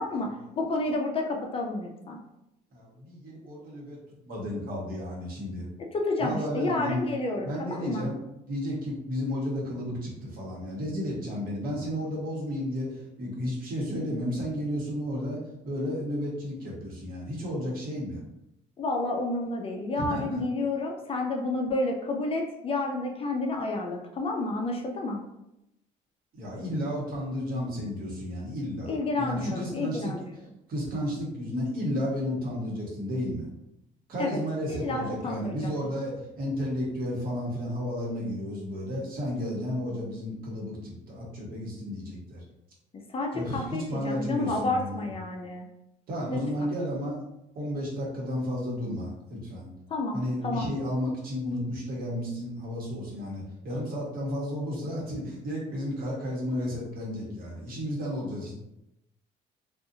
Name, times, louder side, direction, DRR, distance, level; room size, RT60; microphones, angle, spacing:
voice 1, 0.0-2.2 5.9-8.1 18.8-25.2 28.8-30.2 34.2-34.4 34.7-35.7 43.1-45.6 46.3-46.4 49.9-50.2 50.4-50.7, left 2 dB, 35° left, 1 dB, 0.4 m, -30 dB
voice 2, 2.7-4.0 4.2-5.7 6.2-7.1 7.4-8.2 8.5-15.4 15.6-18.2 20.0-20.4 26.3-30.2 30.7-33.5 34.1-42.4 43.3-45.1 46.1-47.2 47.5-49.7 50.1-58.5, equal, 60° right, -4 dB, 1.2 m, -32 dB
2.5 x 2.4 x 2.7 m, 0.86 s
cardioid pair, 110°, 17 cm